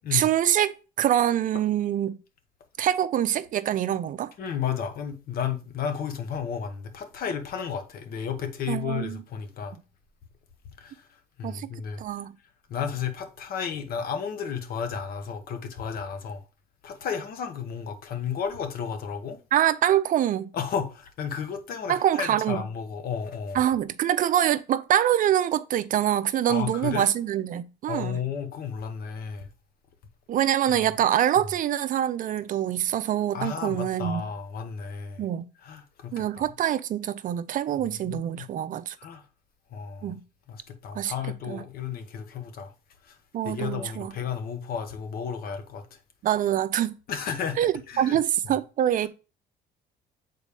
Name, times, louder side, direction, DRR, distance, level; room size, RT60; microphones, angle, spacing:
voice 1, 0.1-2.2 2.8-4.3 8.7-9.2 11.4-11.7 12.0-12.3 19.5-20.5 21.9-22.6 23.5-28.2 30.3-34.2 35.2-35.4 36.1-38.9 40.0-40.2 40.9-41.1 41.5-41.6 43.3-44.1 46.2-46.9 47.6-49.1, right 11 dB, 55° right, 0.5 m, -25 dB
voice 2, 4.4-9.8 10.8-11.1 11.4-12.0 12.7-16.4 16.8-19.4 20.5-23.6 26.5-27.1 27.9-29.5 33.3-35.2 35.6-36.5 37.8-38.4 39.0-39.2 39.7-40.1 40.5-42.7 43.0-43.2 43.4-45.9 47.1-47.6 47.9-48.2, left 7 dB, 60° left, 1.1 m, -33 dB
6.7 x 4.1 x 3.4 m
cardioid pair, 110°, 17 cm